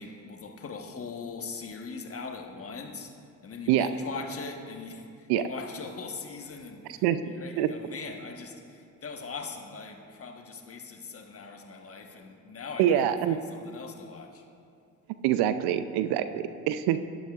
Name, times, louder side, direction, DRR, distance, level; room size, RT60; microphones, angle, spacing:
voice 1, 0.0-3.1 3.4-5.0 5.4-13.2 13.5-14.4, left 4 dB, 35° left, 3 dB, 1.2 m, -41 dB
voice 2, 12.8-13.4 15.2-17.1, right 11 dB, 70° right, 11 dB, 0.6 m, -25 dB
12.0 x 11.0 x 2.4 m, 2.4 s
hypercardioid pair, 55°, 40 cm